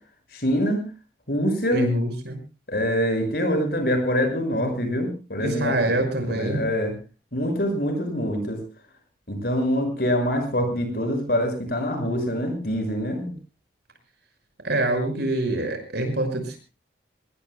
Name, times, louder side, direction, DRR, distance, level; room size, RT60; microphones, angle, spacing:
voice 1, 0.3-0.9 1.3-1.9 2.7-5.9 6.3-6.9 7.3-8.6 9.3-13.3, equal, 55° left, 5 dB, 6.1 m, -25 dB
voice 2, 1.7-2.4 5.4-6.6 14.6-16.6, right 1 dB, 70° right, 5 dB, 5.9 m, -25 dB
25.0 x 20.5 x 2.2 m, 0.32 s
head